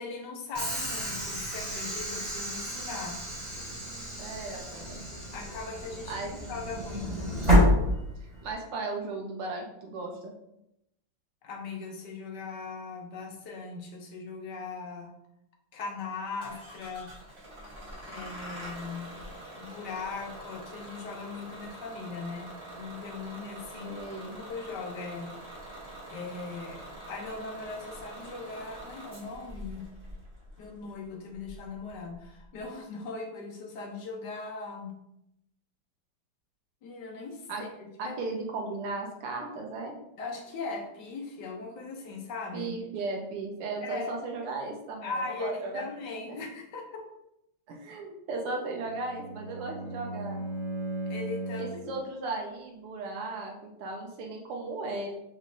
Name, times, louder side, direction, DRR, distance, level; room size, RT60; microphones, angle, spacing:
voice 1, 0.0-3.2 5.3-7.3 11.4-15.1 15.7-17.1 18.0-19.1 19.6-24.0 24.3-25.3 26.1-29.9 30.6-34.9 36.8-38.2 40.2-42.7 43.8-44.1 45.0-47.0 51.1-52.0, left 4 dB, 65° left, 1 dB, 1.2 m, -39 dB
Train / Sliding door, 0.5-8.5, left 1 dB, 15° right, 1.6 m, -29 dB
voice 2, 4.2-5.0 6.1-6.3 8.4-10.3 23.8-24.4 37.5-37.6 38.0-39.9 42.5-45.8 46.3-46.4 47.7-50.4 51.6-55.1, right 3 dB, 80° right, 1 dB, 1.7 m, -36 dB
Bus / Engine starting, 16.4-32.6, right 1 dB, 30° right, 0.5 m, -45 dB
Bowed string instrument, 48.7-51.9, right 2 dB, 40° left, 1.1 m, -37 dB
6.1 x 3.1 x 2.7 m, 0.82 s
omnidirectional pair, 2.4 m